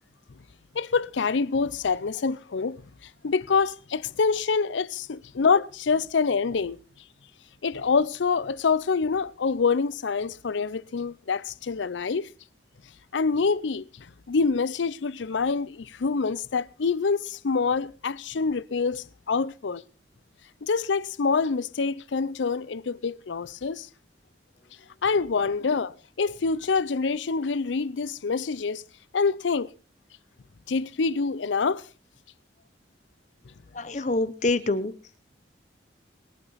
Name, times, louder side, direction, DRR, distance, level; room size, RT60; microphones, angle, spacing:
voice 1, 0.7-2.8 3.2-6.8 7.6-12.3 13.1-13.8 14.3-19.8 20.6-23.9 25.0-28.8 29.1-29.7 30.7-31.8, left 5 dB, 90° left, 0.6 m, -26 dB
voice 2, 33.7-34.9, left 2 dB, 40° left, 0.8 m, -26 dB
23.0 x 8.8 x 4.1 m
head